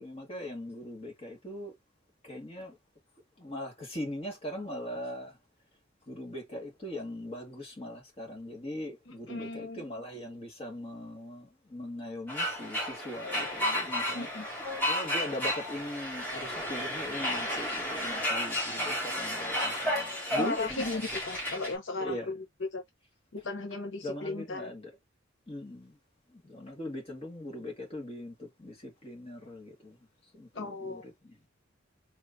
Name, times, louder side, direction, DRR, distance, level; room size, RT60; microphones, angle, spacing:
voice 1, 0.0-1.7 2.2-2.8 3.4-5.4 6.1-14.3 14.9-21.0 22.0-22.3 24.0-24.9 25.5-26.0 26.3-30.0 30.3-31.4, left 1 dB, 30° left, 1.8 m, -40 dB
voice 2, 9.1-9.8 14.1-14.5 20.3-22.4 22.7-22.8 23.3-24.7 30.5-31.0, left 2 dB, 65° left, 0.7 m, -36 dB
sound 1, 12.3-21.7, left 1 dB, 10° left, 2.1 m, -32 dB
4.5 x 3.1 x 2.6 m
head